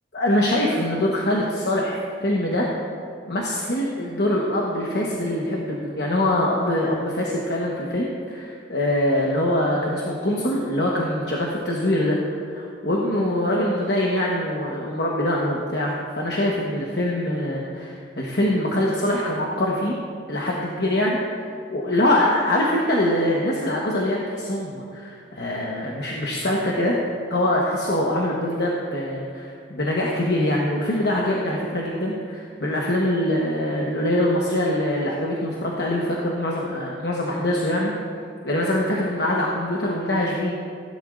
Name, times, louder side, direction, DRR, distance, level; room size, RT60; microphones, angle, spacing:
voice 1, 0.1-1.9 2.2-2.7 3.3-12.2 12.5-19.9 20.3-21.2 21.7-27.0 27.3-37.9 38.4-40.6, left 1 dB, 70° left, -3 dB, 1.2 m, -23 dB
16.5 x 10.5 x 2.5 m, 2.2 s
head